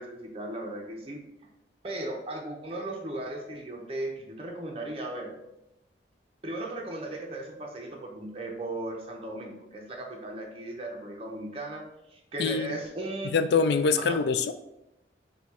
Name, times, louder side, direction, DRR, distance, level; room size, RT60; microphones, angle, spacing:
voice 1, 0.0-1.5 1.8-5.4 6.4-13.5 14.0-14.2, right 1 dB, 30° right, 1 dB, 0.6 m, -37 dB
voice 2, 12.4-12.7 13.2-14.5, left 5 dB, 65° left, 10 dB, 0.3 m, -24 dB
4.1 x 2.3 x 4.6 m, 0.88 s
head